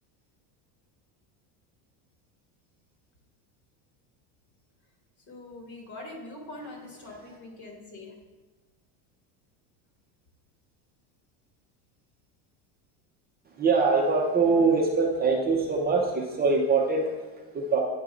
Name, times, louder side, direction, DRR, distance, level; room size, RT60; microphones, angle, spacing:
voice 1, 5.3-8.2, left 2 dB, 40° left, 0 dB, 2.2 m, -43 dB
voice 2, 13.4-17.8, right 4 dB, 20° right, -2 dB, 0.8 m, -24 dB
9.7 x 4.6 x 3.8 m, 1.2 s
cardioid pair, 140°, 44 cm